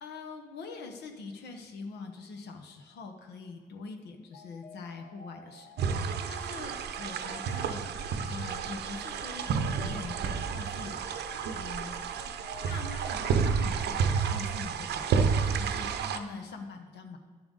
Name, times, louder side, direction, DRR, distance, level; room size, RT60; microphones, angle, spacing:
voice 1, 0.0-6.0 6.3-7.9 8.3-11.0 11.5-12.0 12.6-17.2, left 4 dB, 80° left, 4 dB, 1.1 m, -43 dB
sound 1, 4.3-14.1, left 2 dB, 50° left, 1.9 m, -52 dB
sound 2, 5.8-16.2, right 6 dB, 80° right, 0.6 m, -30 dB
11.0 x 7.0 x 4.0 m, 1.4 s
supercardioid pair, 45°, 17 cm